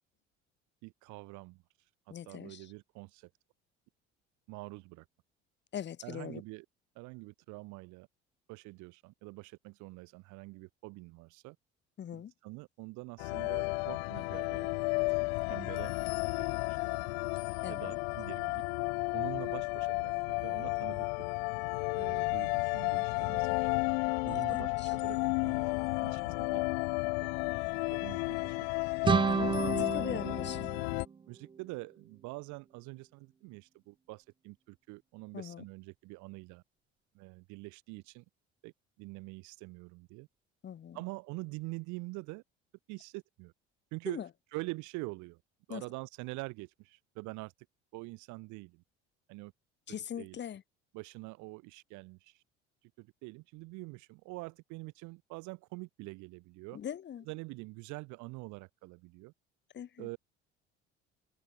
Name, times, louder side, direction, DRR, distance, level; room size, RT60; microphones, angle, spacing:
voice 1, 0.8-1.6 2.1-3.3 4.5-5.1 6.0-6.7 6.9-8.1 8.5-11.6 12.1-14.7 15.5-15.9 16.4-17.0 17.7-18.6 19.1-21.1 21.9-23.8 24.2-25.7 26.0-26.7 27.2-27.3 27.9-28.6 29.8-30.4 31.3-36.6 37.1-38.2 38.6-38.7 39.0-40.3 40.9-42.4 42.9-43.5 43.9-44.2 44.5-45.4 45.7-47.5 47.9-48.8 49.3-49.5 49.9-50.4 50.9-52.4 53.0-56.8 57.3-59.3 60.0-60.2, right 25 dB, 55° right, 1.0 m, -45 dB
voice 2, 2.1-2.7 5.7-6.4 12.0-12.3 17.6-17.9 24.3-24.9 29.3-30.7 35.3-35.6 40.6-41.0 44.1-44.3 45.7-45.8 49.9-50.6 56.7-57.3 59.7-60.1, left 9 dB, 30° left, 1.0 m, -41 dB
sound 1, 13.2-31.1, left 31 dB, 60° left, 0.6 m, -33 dB
sound 2, 29.0-31.8, right 6 dB, 15° right, 0.5 m, -31 dB
figure-of-eight pair, 60°, 35 cm